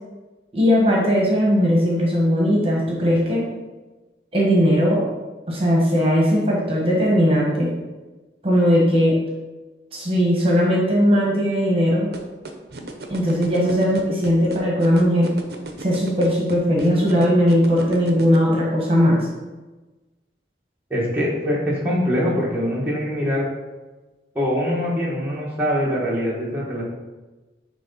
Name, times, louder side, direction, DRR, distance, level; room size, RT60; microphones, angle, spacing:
voice 1, 0.5-3.4 4.3-5.0 5.5-7.7 8.4-9.2 9.9-12.1 13.1-15.3 15.8-19.3, equal, 30° right, -3 dB, 1.4 m, -18 dB
sound 1, 12.1-18.4, right 2 dB, 65° right, 0.8 m, -35 dB
voice 2, 20.9-23.5 24.3-26.8, equal, 10° right, -6 dB, 1.4 m, -23 dB
9.5 x 3.4 x 4.2 m, 1.2 s
head